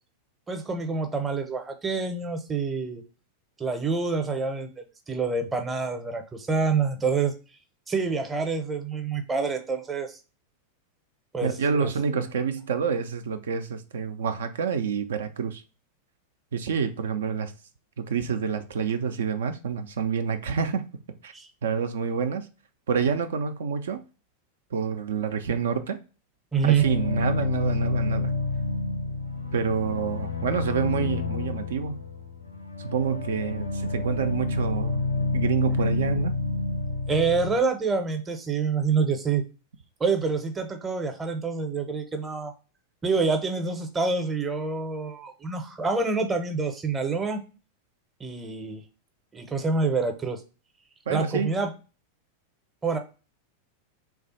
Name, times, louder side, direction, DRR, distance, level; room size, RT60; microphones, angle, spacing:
voice 1, 0.5-3.0 3.6-7.3 7.9-10.2 11.3-11.5 11.8-11.9 21.3-21.5 26.5-26.8 37.1-39.4 40.0-42.5 43.0-47.4 48.2-48.8 49.3-50.4 51.1-51.7 52.8-53.0, right 4 dB, 15° right, 0.7 m, -27 dB
voice 2, 11.4-15.6 16.5-17.5 18.0-20.8 21.2-21.3 21.6-22.5 22.9-24.0 24.7-26.0 26.6-28.3 29.5-32.0 32.8-36.4 51.1-51.5, right 6 dB, 60° right, 0.4 m, -28 dB
sound 1, 26.8-37.6, left 3 dB, 75° left, 0.5 m, -29 dB
3.3 x 2.4 x 3.9 m
figure-of-eight pair, 90°, 0 cm